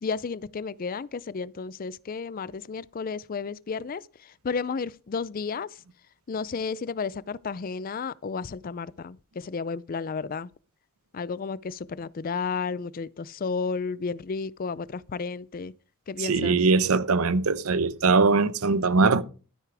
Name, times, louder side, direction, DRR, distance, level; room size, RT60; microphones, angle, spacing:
voice 1, 0.0-5.8 6.3-10.5 11.1-15.7 16.1-16.7, left 5 dB, 40° left, 0.4 m, -32 dB
voice 2, 16.2-19.2, right 4 dB, 80° right, 0.8 m, -21 dB
13.0 x 9.7 x 3.4 m
head